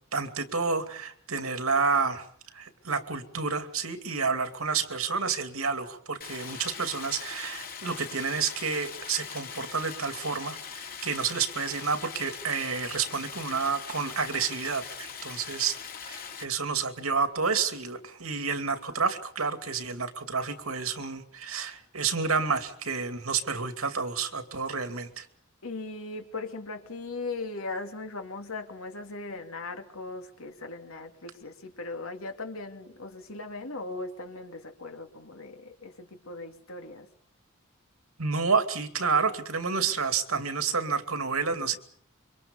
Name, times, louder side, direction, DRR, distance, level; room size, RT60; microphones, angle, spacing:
voice 1, 0.1-2.3 2.5-15.8 16.0-25.3 38.2-41.8, right 5 dB, 85° right, 8 dB, 2.6 m, -29 dB
Stream, 6.2-16.4, left 7 dB, 45° left, 3.0 m, -41 dB
voice 2, 25.6-37.1, left 3 dB, 80° left, 5 dB, 2.9 m, -38 dB
26.5 x 24.5 x 5.4 m, 0.62 s
head